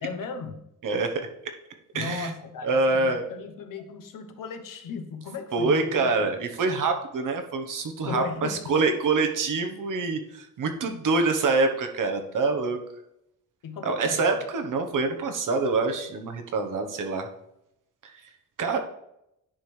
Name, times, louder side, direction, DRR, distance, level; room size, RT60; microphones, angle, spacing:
voice 1, 0.0-0.7 1.9-6.3 8.0-8.9 13.6-14.3, left 5 dB, 80° left, 7 dB, 1.0 m, -36 dB
voice 2, 0.8-1.3 1.9-2.3 2.6-3.2 5.5-12.8 13.8-17.3 18.0-18.1 18.6-18.8, right 3 dB, 70° right, 5 dB, 1.1 m, -25 dB
10.0 x 4.4 x 3.3 m, 0.81 s
cardioid pair, 110°, 32 cm